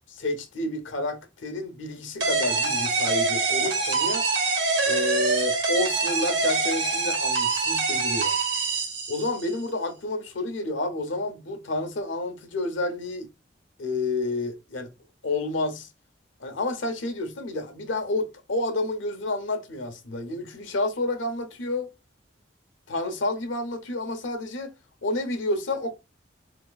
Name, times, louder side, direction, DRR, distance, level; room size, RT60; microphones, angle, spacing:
voice 1, 0.1-4.3 4.9-8.4 9.1-13.3 13.8-14.9 15.2-15.9 16.4-21.9 22.9-24.7 25.0-25.9, left 2 dB, 85° left, 0.7 m, -30 dB
sound 1, 2.2-9.6, right 4 dB, 70° right, 1.2 m, -25 dB
3.9 x 2.8 x 2.3 m
head